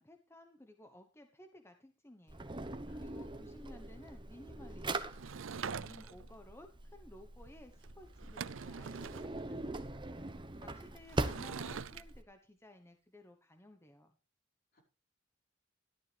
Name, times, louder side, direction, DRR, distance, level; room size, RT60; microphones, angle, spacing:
voice 1, 0.0-2.5 2.9-5.2 5.5-14.1, left 1 dB, 15° left, 6 dB, 1.1 m, -57 dB
Drawer open or close, 2.3-12.2, right 2 dB, 25° right, 1.0 m, -42 dB
voice 2, 2.9-3.5 10.5-10.8 14.7-14.8, equal, 55° left, -1 dB, 5.1 m, -67 dB
Sliding door / Wood, 5.1-6.3 7.8-7.9 8.2-9.3 11.1-12.0, right 6 dB, 85° right, 0.6 m, -43 dB
14.0 x 12.0 x 3.4 m, 0.32 s
head